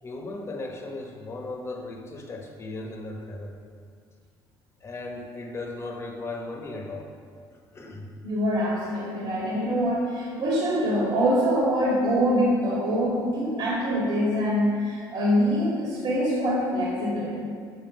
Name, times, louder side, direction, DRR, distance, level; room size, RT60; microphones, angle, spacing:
voice 1, 0.0-3.6 4.8-7.1 7.7-8.1, left 2 dB, 30° left, 2 dB, 1.1 m, -36 dB
voice 2, 8.2-17.5, equal, 55° right, -5 dB, 1.9 m, -24 dB
6.7 x 5.3 x 6.0 m, 2.2 s
cardioid pair, 105°, 9 cm